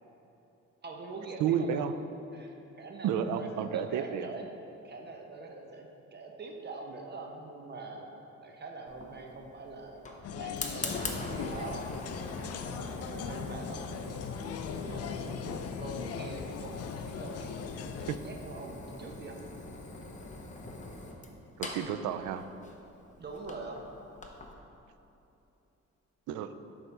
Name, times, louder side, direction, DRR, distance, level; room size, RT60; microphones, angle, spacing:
voice 1, 0.8-1.8 2.3-4.5 4.8-11.8 12.5-13.8 14.7-19.4 23.2-23.8, right 3 dB, 35° right, 1 dB, 0.9 m, -44 dB
voice 2, 1.4-1.9 3.0-4.3 18.1-18.2 21.6-22.4 26.3-26.5, right 8 dB, 80° right, 10 dB, 0.4 m, -31 dB
Fire, 8.9-24.5, left 2 dB, 25° left, 0.8 m, -43 dB
sound 1, 10.2-18.2, left 7 dB, 55° left, 0.5 m, -39 dB
6.6 x 4.4 x 5.4 m, 2.9 s
cardioid pair, 90°, 30 cm